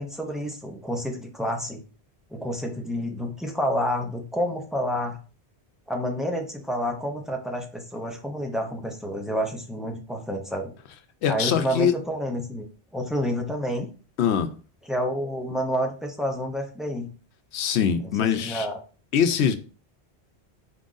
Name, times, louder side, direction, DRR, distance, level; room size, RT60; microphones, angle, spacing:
voice 1, 0.0-1.8 2.3-5.2 5.9-10.7 11.3-13.9 14.9-17.1 18.2-18.8, equal, ahead, 0.5 m, -29 dB
voice 2, 11.2-11.9 14.2-14.5 17.5-18.7 19.1-19.5, left 8 dB, 90° left, 0.9 m, -23 dB
4.5 x 2.6 x 3.7 m
omnidirectional pair, 1.1 m